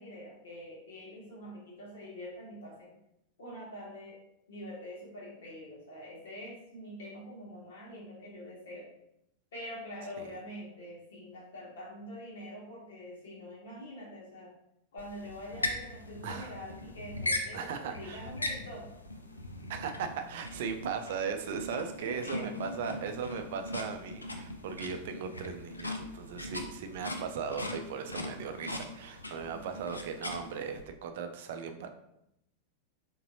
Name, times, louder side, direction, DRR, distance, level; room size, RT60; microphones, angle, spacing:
voice 1, 0.0-2.9 3.4-4.2 4.5-8.9 9.5-14.5 14.9-18.9 21.7-22.5 29.3-29.7, equal, 60° left, -4 dB, 1.6 m, -45 dB
sound 1, 15.0-30.8, left 1 dB, 80° left, 0.5 m, -40 dB
voice 2, 17.5-18.3 19.7-31.9, right 6 dB, 55° right, 7 dB, 0.4 m, -38 dB
4.1 x 3.8 x 2.6 m, 0.80 s
figure-of-eight pair, 90°, 0 cm